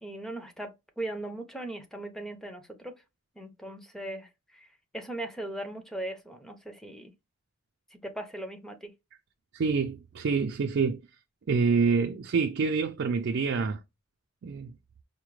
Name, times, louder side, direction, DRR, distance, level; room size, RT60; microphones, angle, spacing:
voice 1, 0.0-2.9 3.4-4.7 4.9-7.1 8.0-8.9, right 1 dB, ahead, 0.6 m, -39 dB
voice 2, 9.5-11.0 11.5-13.8 14.4-14.7, right 5 dB, 55° right, 0.4 m, -26 dB
4.7 x 2.1 x 3.1 m
head